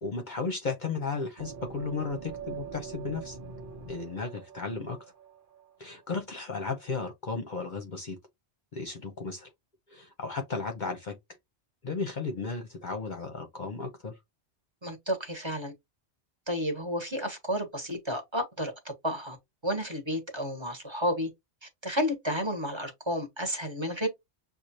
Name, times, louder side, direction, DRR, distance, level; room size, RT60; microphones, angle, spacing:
voice 1, 0.0-3.4 3.9-5.0 5.8-8.2 8.7-9.5 9.9-11.2 11.8-14.2, left 4 dB, 50° left, 0.8 m, -34 dB
sound 1, 1.4-6.0, right 6 dB, 50° right, 1.1 m, -43 dB
voice 2, 14.8-15.7 16.5-19.4 19.6-21.3 21.6-24.1, equal, 25° right, 1.3 m, -31 dB
6.3 x 2.5 x 2.8 m
omnidirectional pair, 1.1 m